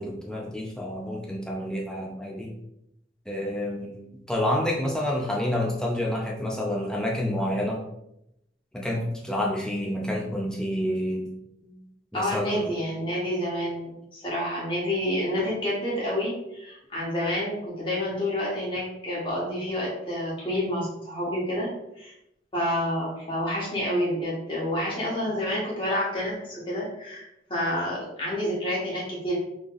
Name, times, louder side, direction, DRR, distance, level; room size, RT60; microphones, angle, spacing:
voice 1, 0.0-2.5 3.3-7.8 8.7-11.3 12.1-12.7, left 1 dB, 5° left, -2 dB, 0.5 m, -29 dB
voice 2, 12.1-21.7 22.0-22.1 22.5-27.2 27.5-29.4, left 1 dB, 25° left, -6 dB, 1.3 m, -29 dB
3.7 x 3.3 x 2.5 m, 0.83 s
head